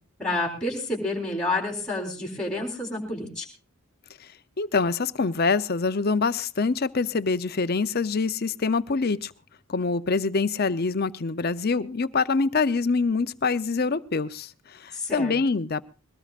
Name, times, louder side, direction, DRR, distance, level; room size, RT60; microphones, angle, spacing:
voice 1, 0.2-3.4 14.9-15.3, left 2 dB, 5° left, -1 dB, 3.8 m, -29 dB
voice 2, 4.6-9.3 9.7-15.8, left 4 dB, 45° left, 13 dB, 0.6 m, -25 dB
22.0 x 18.5 x 2.5 m, 0.33 s
head